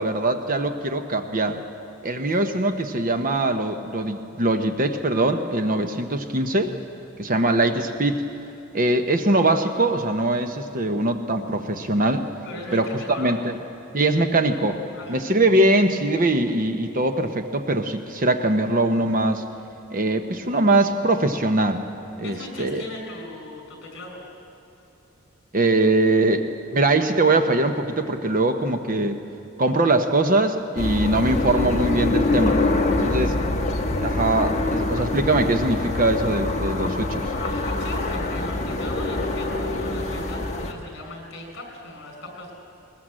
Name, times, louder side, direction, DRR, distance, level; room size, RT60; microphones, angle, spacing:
voice 1, 0.0-1.6 2.0-6.7 7.2-8.2 8.7-12.3 12.7-12.9 13.2-13.5 13.9-14.8 15.1-19.4 19.9-21.8 22.2-22.8 25.5-29.2 29.6-32.6 33.0-33.3 34.0-37.3, right 2 dB, 40° right, 7 dB, 1.0 m, -22 dB
voice 2, 12.4-13.4 14.9-15.2 22.2-24.2 35.0-35.1 37.3-42.5, left 2 dB, 50° left, 2 dB, 5.4 m, -38 dB
sound 1, 30.8-40.7, left 2 dB, 30° left, 1.4 m, -25 dB
21.0 x 20.0 x 7.6 m, 2.9 s
head